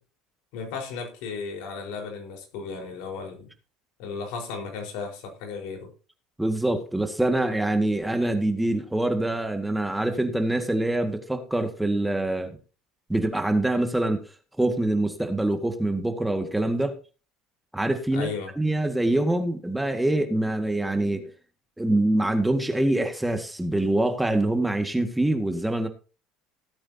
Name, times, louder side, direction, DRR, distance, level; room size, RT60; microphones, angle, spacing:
voice 1, 0.5-3.5 4.0-5.9 18.1-18.5, left 5 dB, 70° left, 4.7 m, -35 dB
voice 2, 6.4-12.6 13.1-14.2 14.6-17.0 17.7-18.3 18.6-21.3 21.8-25.9, right 1 dB, 5° right, 1.9 m, -25 dB
18.0 x 8.7 x 2.9 m
hypercardioid pair, 80°, 0 cm